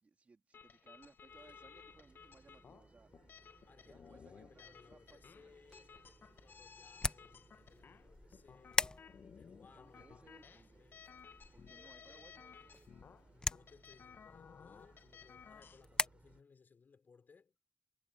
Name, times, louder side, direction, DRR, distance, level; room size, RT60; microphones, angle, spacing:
voice 1, 0.0-3.3 3.8-5.6 9.7-10.8 11.5-12.6, right 4 dB, 50° right, 2.3 m, -64 dB
sound 1, 0.5-15.8, left 6 dB, 90° left, 0.6 m, -58 dB
sound 2, 1.3-16.4, right 3 dB, 35° right, 4.3 m, -65 dB
voice 2, 3.7-6.0 6.3-11.1 13.3-17.6, left 5 dB, 65° left, 4.5 m, -65 dB
sound 3, 5.5-16.1, left 2 dB, 25° left, 0.7 m, -43 dB
wide cardioid pair, 115°, 3 cm